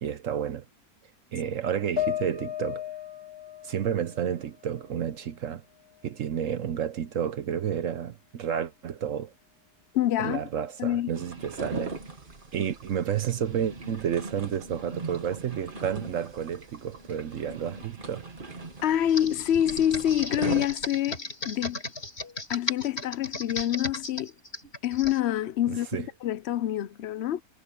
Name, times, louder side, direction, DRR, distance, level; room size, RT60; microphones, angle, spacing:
voice 1, 0.0-0.6 1.3-2.8 3.6-5.6 6.0-9.3 10.2-12.0 12.5-18.3 25.7-26.1, right 9 dB, 60° right, 1.0 m, -31 dB
sound 1, 2.0-5.4 5.8-6.8, left 11 dB, 15° left, 1.7 m, -36 dB
voice 2, 9.9-10.4 10.8-11.1 18.8-21.8 22.5-24.3 24.8-25.9 26.2-27.4, left 11 dB, 70° left, 0.6 m, -26 dB
sound 2, 11.1-20.7, right 3 dB, 30° right, 1.7 m, -39 dB
Computer keyboard, 19.1-25.2, left 2 dB, 35° left, 4.1 m, -35 dB
omnidirectional pair, 1.8 m